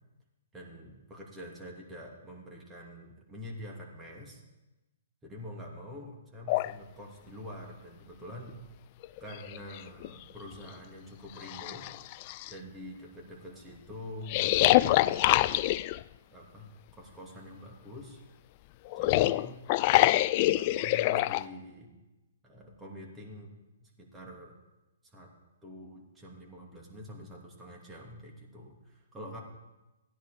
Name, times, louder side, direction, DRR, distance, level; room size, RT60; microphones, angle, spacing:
voice 1, 0.5-4.4 5.2-8.6 9.2-11.9 12.5-15.6 16.3-18.2 18.9-19.5 20.1-22.0 22.4-24.5 25.1-25.3 25.6-29.4, left 1 dB, 15° right, -1 dB, 2.8 m, -46 dB
sound 1, 6.5-6.7 8.5-8.6 9.0-10.1 10.6-10.7 11.4-12.5 14.3-16.0 18.9-21.4, left 16 dB, 40° left, 0.3 m, -25 dB
15.5 x 10.0 x 5.1 m, 1.1 s
hypercardioid pair, 125°, 0 cm